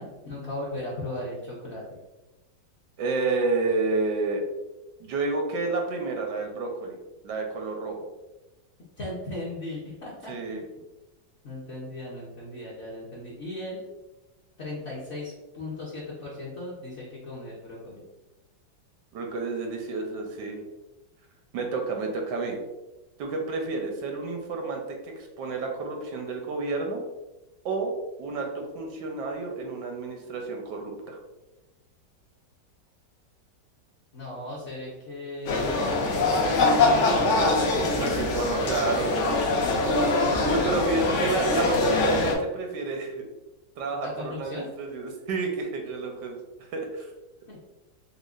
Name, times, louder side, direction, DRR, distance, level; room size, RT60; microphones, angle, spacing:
voice 1, 0.0-2.0 9.0-10.6 11.4-13.8 14.6-18.0 34.1-36.1 36.4-37.4 39.5-41.3 44.0-44.7 47.5-47.6, left 2 dB, 55° left, -6 dB, 0.7 m, -37 dB
voice 2, 3.0-4.4 5.0-7.0 7.2-8.0 10.3-10.6 19.1-20.7 21.5-22.6 23.2-27.0 27.6-27.9 28.2-31.2 38.0-39.5 40.4-43.3 43.8-47.1, right 3 dB, 75° right, 2 dB, 1.2 m, -30 dB
sound 1, 35.5-42.3, left 2 dB, 90° left, 0.6 m, -23 dB
5.1 x 2.1 x 2.4 m, 1.0 s
omnidirectional pair, 1.9 m